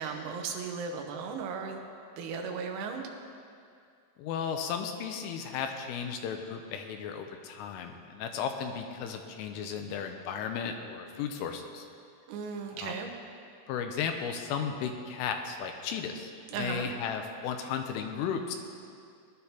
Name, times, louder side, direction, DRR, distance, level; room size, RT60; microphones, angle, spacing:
voice 1, 0.0-1.8 2.2-3.0 12.3-13.1 16.5-16.9, right 5 dB, 80° right, 3 dB, 3.7 m, -36 dB
voice 2, 4.2-11.9 12.7-12.9 13.7-16.3 16.6-18.6, left 7 dB, 80° left, 5 dB, 3.2 m, -35 dB
20.0 x 11.5 x 2.9 m, 2.3 s
omnidirectional pair, 6.0 m